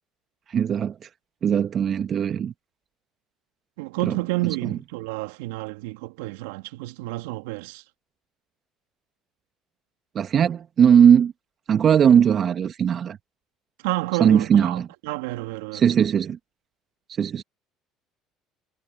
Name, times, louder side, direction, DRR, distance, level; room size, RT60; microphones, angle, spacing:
voice 1, 0.5-1.1 1.4-2.5 4.0-4.2 10.1-11.3 11.7-13.2 14.2-14.9 15.7-16.4 17.2-17.4, right 8 dB, 50° right, 1.2 m, -19 dB
voice 2, 3.8-7.8 13.8-15.8, right 21 dB, 80° right, 2.8 m, -30 dB
hypercardioid pair, 65°, 0 cm